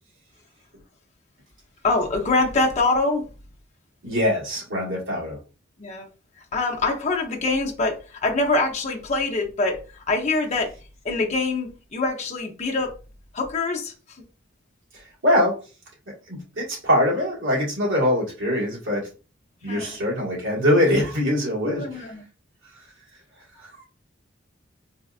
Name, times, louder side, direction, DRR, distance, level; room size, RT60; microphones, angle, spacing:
voice 1, 1.8-3.3 5.8-6.1 6.5-10.7 11.0-12.9 13.3-13.9 19.7-19.9 21.6-22.2, left 3 dB, 35° left, 0.6 m, -24 dB
voice 2, 4.0-5.4 14.9-15.6 16.3-19.1 19.6-22.1 22.7-22.9 23.4-23.9, left 1 dB, 70° right, 1.6 m, -23 dB
4.1 x 2.4 x 2.3 m
head